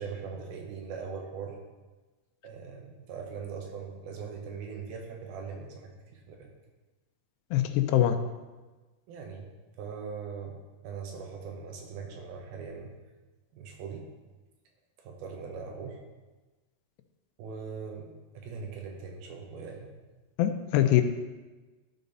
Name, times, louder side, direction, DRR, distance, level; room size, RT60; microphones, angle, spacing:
voice 1, 0.0-1.6 2.4-6.5 9.1-9.5 9.8-10.6 10.8-12.9 13.5-14.1 15.0-16.0 17.4-18.1 18.3-19.9, right 5 dB, 70° right, 2 dB, 2.8 m, -40 dB
voice 2, 7.5-8.2 20.4-21.0, left 12 dB, 90° left, 7 dB, 2.8 m, -23 dB
12.0 x 5.3 x 4.0 m, 1.2 s
omnidirectional pair, 4.7 m